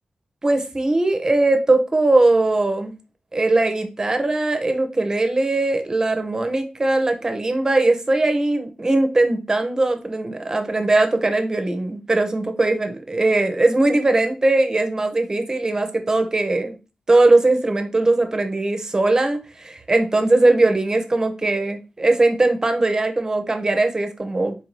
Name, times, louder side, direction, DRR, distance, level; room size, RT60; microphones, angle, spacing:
voice 1, 0.4-2.9 3.3-16.8 17.1-24.5, right 2 dB, 25° right, 6 dB, 0.6 m, -20 dB
4.5 x 2.6 x 3.0 m, 0.30 s
wide cardioid pair, 135°, 2 cm